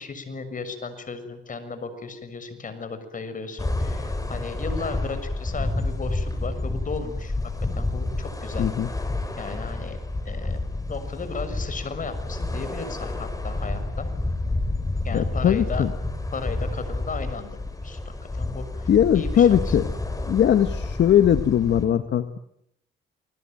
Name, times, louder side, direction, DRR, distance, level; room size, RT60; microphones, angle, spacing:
voice 1, 0.0-7.3 7.7-8.7 9.4-10.0 10.2-10.6 10.9-14.1 15.0-15.9 16.3-19.8, left 4 dB, 40° left, 10 dB, 6.7 m, -35 dB
sound 1, 3.6-21.9, left 2 dB, 15° left, 6.4 m, -29 dB
voice 2, 8.6-8.9 15.1-15.9 18.9-19.8 20.3-22.4, left 9 dB, 65° left, 10 dB, 1.8 m, -20 dB
29.5 x 21.5 x 9.3 m, 0.74 s
cardioid pair, 90°, 20 cm